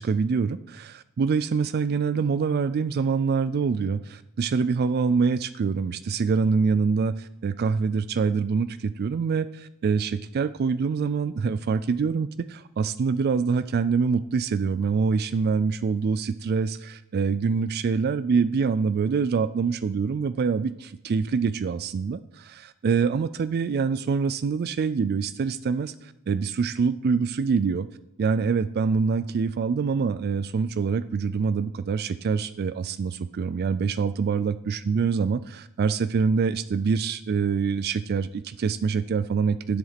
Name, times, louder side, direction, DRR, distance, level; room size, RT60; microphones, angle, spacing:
voice 1, 0.0-27.9 28.2-39.8, right 5 dB, 45° right, 15 dB, 0.3 m, -25 dB
10.0 x 7.9 x 5.8 m, 0.83 s
head